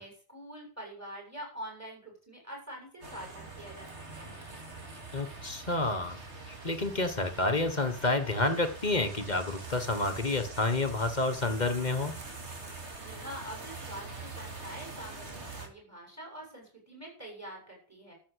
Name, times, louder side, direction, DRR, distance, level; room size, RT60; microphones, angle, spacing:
voice 1, 0.0-4.4 12.8-18.1, right 1 dB, 15° right, -1 dB, 7.4 m, -45 dB
sound 1, 3.0-15.7, right 3 dB, 80° right, 3.0 m, -44 dB
voice 2, 5.1-6.2 6.5-12.1, left 2 dB, 40° left, 9 dB, 1.5 m, -29 dB
13.0 x 7.1 x 8.1 m, 0.43 s
omnidirectional pair, 1.1 m